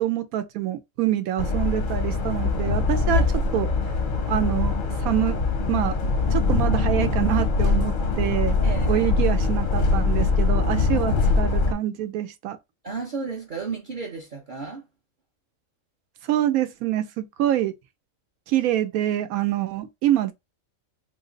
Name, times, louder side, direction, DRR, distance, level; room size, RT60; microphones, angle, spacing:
voice 1, 0.0-3.2 3.5-3.7 4.3-4.8 5.0-5.4 5.7-6.0 6.3-8.6 8.9-12.6 16.3-17.7 18.5-20.3, right 12 dB, 85° right, 1.1 m, -25 dB
sound 1, 1.4-11.7, left 3 dB, 55° left, 0.6 m, -22 dB
voice 2, 8.6-9.1 12.8-14.9, right 5 dB, 45° right, 0.7 m, -33 dB
3.2 x 2.0 x 3.8 m
omnidirectional pair, 1.4 m